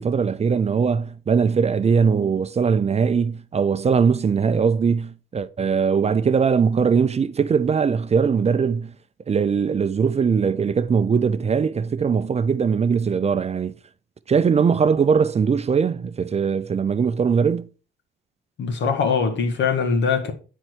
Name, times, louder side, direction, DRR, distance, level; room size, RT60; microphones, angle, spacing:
voice 1, 0.0-8.9 9.3-13.7 14.3-17.7, right 6 dB, 35° right, 0.5 m, -20 dB
voice 2, 18.6-20.3, left 5 dB, 65° left, 1.8 m, -22 dB
9.8 x 4.5 x 4.6 m
cardioid pair, 90°, 20 cm